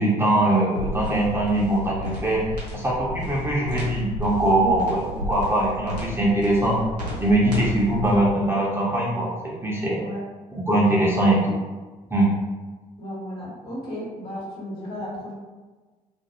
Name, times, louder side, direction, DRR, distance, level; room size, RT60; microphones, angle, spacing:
voice 1, 0.0-2.4 2.7-6.8 7.2-10.0 10.5-11.6 12.1-12.3, right 1 dB, 10° right, -6 dB, 0.7 m, -22 dB
sound 1, 0.7-8.1, equal, 90° right, 0.5 m, -32 dB
voice 2, 4.4-4.8 10.0-10.2 13.0-15.3, equal, 55° left, -7 dB, 1.3 m, -34 dB
2.5 x 2.2 x 2.9 m, 1.3 s
figure-of-eight pair, 45°, 20 cm